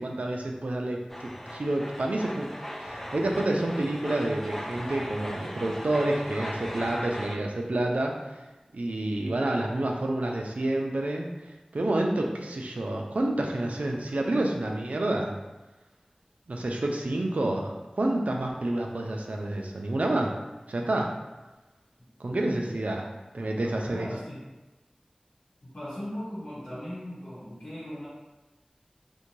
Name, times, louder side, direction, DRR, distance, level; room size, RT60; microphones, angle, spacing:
voice 1, 0.0-2.5 2.8-8.4 8.7-11.3 11.7-15.3 16.5-20.4 20.7-21.2 22.2-23.1 23.3-24.1, right 1 dB, 85° right, 1 dB, 0.3 m, -29 dB
sound 1, 1.1-7.4, equal, 15° left, 0.3 m, -38 dB
voice 2, 22.3-23.1 23.4-24.5 25.6-28.1, equal, 80° left, -12 dB, 1.0 m, -39 dB
2.6 x 2.2 x 2.9 m, 1.1 s
wide cardioid pair, 50°, 2 cm